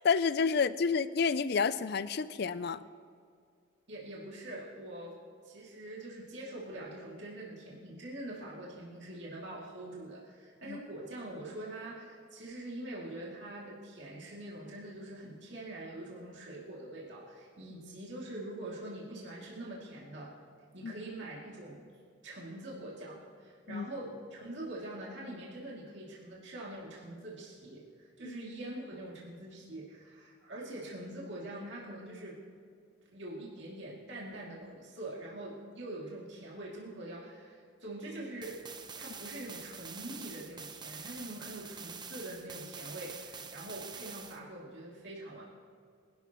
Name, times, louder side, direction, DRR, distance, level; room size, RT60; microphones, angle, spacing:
voice 1, 0.0-2.8 10.7-10.8 20.8-20.9 23.7-23.9 28.2-28.4, left 5 dB, 50° left, 15 dB, 0.4 m, -29 dB
voice 2, 3.9-5.2 5.4-20.3 20.7-21.8 22.2-32.4 33.1-38.6 39.0-45.4, right 1 dB, 60° right, -5 dB, 2.7 m, -44 dB
sound 1, 38.4-44.4, right 6 dB, 20° right, 0.7 m, -46 dB
25.0 x 12.0 x 3.1 m, 2.2 s
head